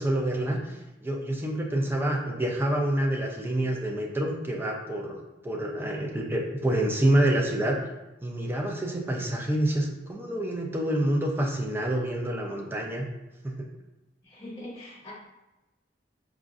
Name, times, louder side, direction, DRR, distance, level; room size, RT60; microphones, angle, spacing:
voice 1, 0.0-5.2 5.4-7.8 8.2-13.0 13.4-13.7, right 1 dB, 10° right, 0 dB, 0.4 m, -27 dB
voice 2, 14.2-15.1, left 1 dB, 20° left, -6 dB, 0.8 m, -42 dB
4.9 x 2.5 x 2.4 m, 1.0 s
head